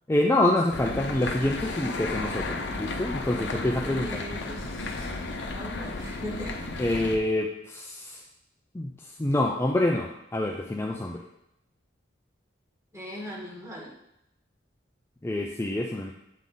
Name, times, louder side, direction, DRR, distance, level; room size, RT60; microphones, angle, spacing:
voice 1, 0.1-4.2 6.8-8.2 8.7-8.9 9.2-11.2 15.2-16.1, left 1 dB, 15° left, 0 dB, 0.4 m, -26 dB
sound 1, 0.7-7.2, left 2 dB, 60° left, 0.7 m, -33 dB
voice 2, 1.8-2.2 4.0-5.1 5.5-6.6 12.9-13.9, equal, 15° right, -3 dB, 1.5 m, -39 dB
8.4 x 3.8 x 3.8 m, 0.82 s
head